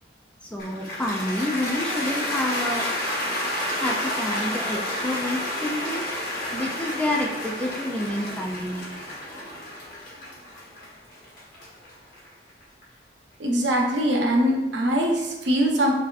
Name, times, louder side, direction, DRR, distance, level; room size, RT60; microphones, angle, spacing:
voice 1, 0.4-3.0 3.7-8.8, left 1 dB, 5° left, 0 dB, 0.3 m, -29 dB
Cheering / Applause, 0.6-12.8, left 1 dB, 50° left, 1.3 m, -30 dB
voice 2, 13.4-15.9, equal, 70° right, 0 dB, 0.8 m, -22 dB
6.0 x 2.7 x 2.4 m, 1.1 s
head